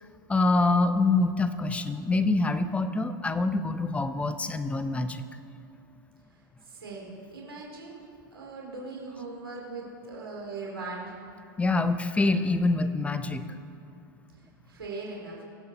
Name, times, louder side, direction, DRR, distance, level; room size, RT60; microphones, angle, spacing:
voice 1, 0.3-5.2 11.6-13.5, left 3 dB, 10° left, 11 dB, 0.7 m, -25 dB
voice 2, 6.6-8.0 8.3-11.2 14.7-15.4, right 3 dB, 90° right, -2 dB, 3.0 m, -39 dB
22.5 x 7.9 x 4.2 m, 2.5 s
hypercardioid pair, 105°, 12 cm